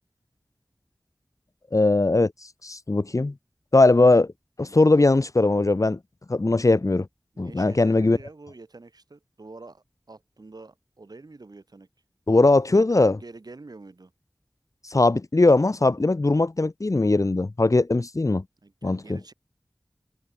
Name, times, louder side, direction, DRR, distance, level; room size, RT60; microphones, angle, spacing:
voice 1, 1.7-2.3 2.6-3.3 3.7-4.3 4.6-6.0 6.3-7.1 7.4-8.2 12.3-13.2 14.9-18.4 18.8-19.0, left 2 dB, 50° left, 1.6 m, -20 dB
voice 2, 7.3-11.9 12.3-14.1 18.6-19.3, right 3 dB, 75° right, 6.9 m, -46 dB
wide cardioid pair, 50°, 7 cm